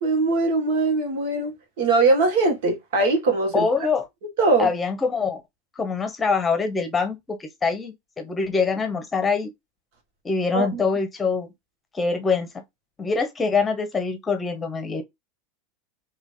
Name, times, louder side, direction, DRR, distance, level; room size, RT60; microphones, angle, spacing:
voice 1, 0.0-3.7 4.4-4.7 10.5-10.8, right 3 dB, 75° right, 1.6 m, -21 dB
voice 2, 3.5-4.0 4.6-5.4 5.8-9.5 10.2-11.5 11.9-12.6 13.0-15.0, left 4 dB, 20° left, 0.9 m, -24 dB
3.1 x 2.9 x 2.6 m
hypercardioid pair, 105°, 0 cm